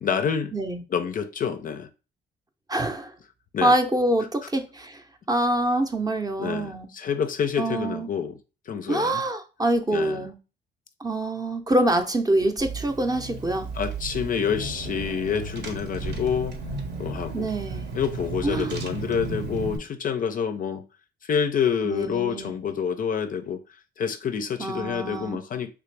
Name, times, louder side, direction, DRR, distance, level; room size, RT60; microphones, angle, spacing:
voice 1, 0.0-0.5 0.9-1.9 3.5-3.7 6.4-8.4 8.7-9.2 9.9-10.2 13.7-16.6 17.0-17.5 17.9-20.8 21.2-23.6 24.0-25.7, left 7 dB, 45° left, 0.4 m, -27 dB
voice 2, 2.7-3.1 3.6-5.0 5.3-6.9 7.6-8.1 8.9-10.3 11.0-13.7 17.3-17.9 18.4-18.7 21.8-22.6 24.6-25.4, right 1 dB, 20° right, 0.5 m, -25 dB
Car / Engine, 12.6-19.8, right 3 dB, 60° right, 0.8 m, -34 dB
3.3 x 2.4 x 3.2 m
cardioid pair, 90°, 20 cm